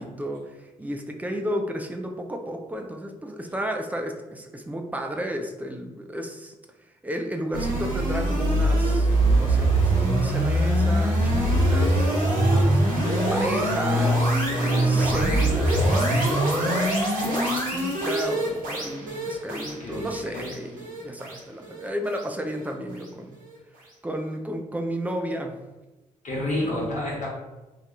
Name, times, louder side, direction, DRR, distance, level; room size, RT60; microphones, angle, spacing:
voice 1, 0.0-6.5 7.0-12.8 13.3-23.4 24.0-25.6 26.6-26.8, right 1 dB, 10° right, 3 dB, 0.5 m, -33 dB
sound 1, 7.5-22.7, right 1 dB, 55° right, 1.1 m, -23 dB
voice 2, 14.6-15.0 19.6-20.5 26.2-27.3, left 1 dB, 45° left, -6 dB, 1.1 m, -30 dB
2.7 x 2.4 x 3.3 m, 1.1 s
figure-of-eight pair, 40°, 17 cm